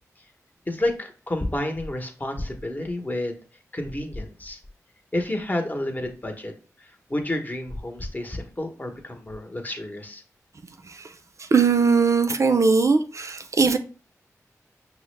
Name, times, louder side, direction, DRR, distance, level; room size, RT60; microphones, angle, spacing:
voice 1, 0.7-3.4 3.7-4.6 5.1-6.5 6.8-10.2, left 1 dB, 25° left, 0.9 m, -30 dB
voice 2, 11.4-13.8, right 4 dB, 55° right, 0.4 m, -20 dB
5.6 x 2.0 x 3.1 m
cardioid pair, 45°, 6 cm